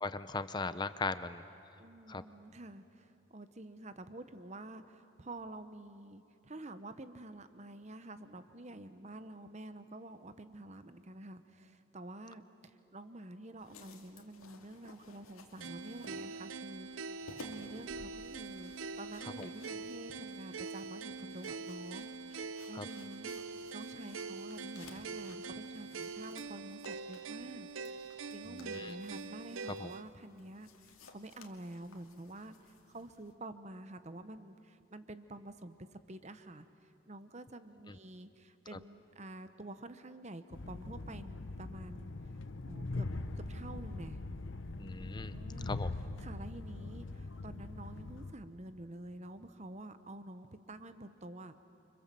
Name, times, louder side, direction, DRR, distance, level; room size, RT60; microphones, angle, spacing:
voice 1, 0.0-1.4 2.1-2.2 19.4-19.5 22.7-22.9 28.5-28.9 29.8-29.9 37.9-38.0 38.7-38.8 44.8-45.4 45.7-45.9, left 3 dB, 20° left, 13 dB, 0.6 m, -38 dB
voice 2, 1.8-23.4 23.7-27.7 28.3-32.6 32.9-36.7 37.1-42.1 42.6-43.1 43.3-44.2 45.3-45.8 46.2-51.5, right 1 dB, 35° right, 11 dB, 1.0 m, -49 dB
sound 1, 13.6-33.3, left 3 dB, 85° left, 2.5 m, -58 dB
sound 2, 15.6-30.0, right 4 dB, 70° right, 0.7 m, -44 dB
Train, 40.5-48.3, left 2 dB, 65° left, 0.9 m, -42 dB
30.0 x 25.5 x 7.6 m, 2.6 s
head